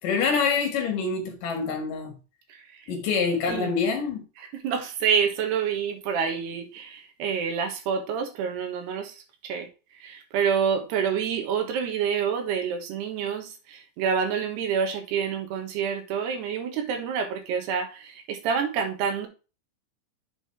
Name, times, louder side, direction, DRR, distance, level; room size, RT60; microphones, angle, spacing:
voice 1, 0.0-2.2 2.9-4.2, left 5 dB, 60° left, 3.0 m, -26 dB
voice 2, 2.5-2.8 3.5-3.7 4.5-9.7 10.0-19.3, right 7 dB, 85° right, 3.4 m, -28 dB
7.6 x 4.7 x 4.5 m
omnidirectional pair, 4.6 m